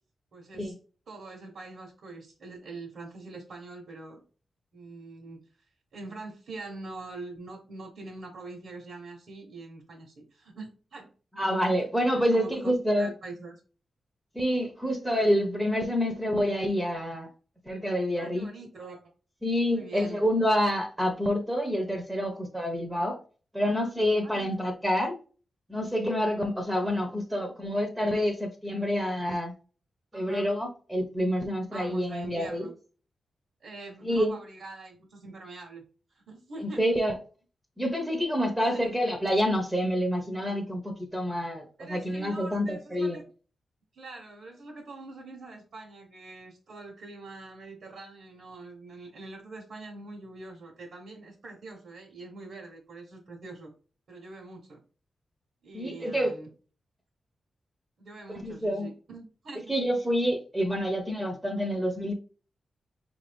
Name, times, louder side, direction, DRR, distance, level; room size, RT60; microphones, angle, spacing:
voice 1, 0.3-0.7 1.1-4.2 4.7-5.4 5.9-11.1 12.1-12.7 13.0-13.5 18.1-19.0 19.7-20.2 24.2-24.5 28.8-28.9 30.1-30.5 31.7-32.7 33.6-35.8 36.1-36.8 38.7-38.9 41.8-43.2 43.9-53.7 54.1-54.8 55.6-56.5 58.0-59.6, right 3 dB, 75° right, 1.1 m, -44 dB
voice 2, 11.4-13.1 14.3-17.3 17.7-18.5 19.4-23.2 23.5-25.2 25.7-29.5 30.1-32.7 34.0-34.3 36.8-37.2 37.8-43.2 55.7-56.4 58.4-58.9 59.7-62.1, equal, 5° right, 0.7 m, -27 dB
5.2 x 2.6 x 3.4 m
wide cardioid pair, 140°, 0 cm